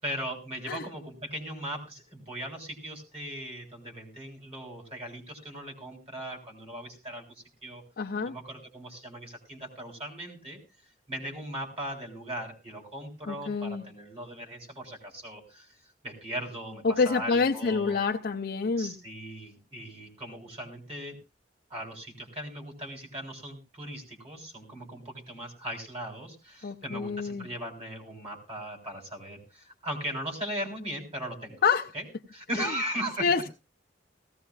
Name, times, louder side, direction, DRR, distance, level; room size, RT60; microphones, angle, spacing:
voice 1, 0.0-7.8 8.3-10.6 11.1-18.0 18.8-21.2 21.7-31.6 31.9-33.3, right 1 dB, 35° right, 2 dB, 3.7 m, -38 dB
voice 2, 8.0-8.3 13.3-13.8 16.8-18.9 26.6-27.5 31.6-31.9 32.6-32.7 33.2-33.5, left 5 dB, 55° left, 2 dB, 0.5 m, -27 dB
17.5 x 15.5 x 2.4 m, 0.29 s
head